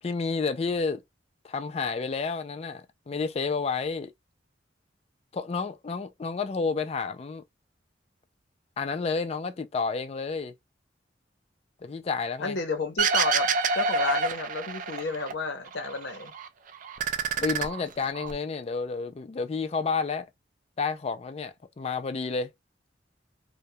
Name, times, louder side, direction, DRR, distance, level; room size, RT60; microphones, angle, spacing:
voice 1, 0.0-1.0 1.4-4.1 5.3-7.4 8.8-10.5 11.8-12.6 17.4-20.3 20.8-22.5, left 4 dB, 35° left, 0.3 m, -30 dB
voice 2, 12.4-16.3, left 3 dB, 65° left, 0.7 m, -32 dB
sound 1, 13.0-15.3 15.7-16.5 16.8-18.3, right 4 dB, 45° right, 0.4 m, -27 dB
2.2 x 2.1 x 2.6 m
head